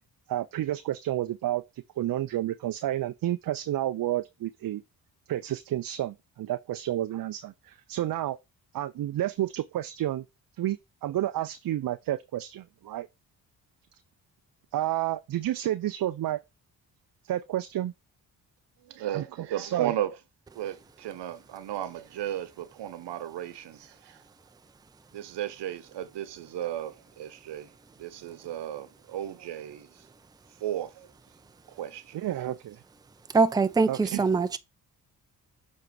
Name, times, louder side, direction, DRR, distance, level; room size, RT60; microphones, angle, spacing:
voice 1, 0.3-1.6 2.0-4.8 5.3-8.4 8.7-10.2 10.6-13.1 14.7-16.4 17.2-17.9 19.1-19.9 32.1-32.8 33.9-34.2, right 13 dB, 55° right, 0.6 m, -30 dB
voice 2, 18.8-20.1 20.5-23.7 25.1-27.7 28.0-29.9 30.6-31.1 31.7-32.2, right 11 dB, 75° right, 1.0 m, -34 dB
voice 3, 33.3-34.6, right 4 dB, 10° right, 0.5 m, -23 dB
7.6 x 3.0 x 4.7 m
supercardioid pair, 50°, 42 cm